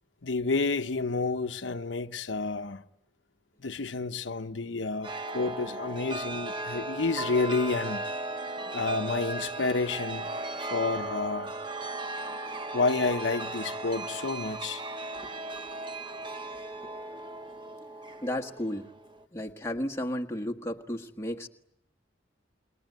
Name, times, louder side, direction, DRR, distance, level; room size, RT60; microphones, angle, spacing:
voice 1, 0.2-2.8 3.6-8.1 8.7-10.3 10.6-11.5 12.7-14.8, left 3 dB, 90° left, 1.0 m, -30 dB
Chime, 5.0-19.2, right 2 dB, 25° right, 1.1 m, -37 dB
voice 2, 18.2-18.9 19.3-21.5, left 1 dB, 15° left, 1.5 m, -33 dB
28.0 x 22.0 x 9.4 m
head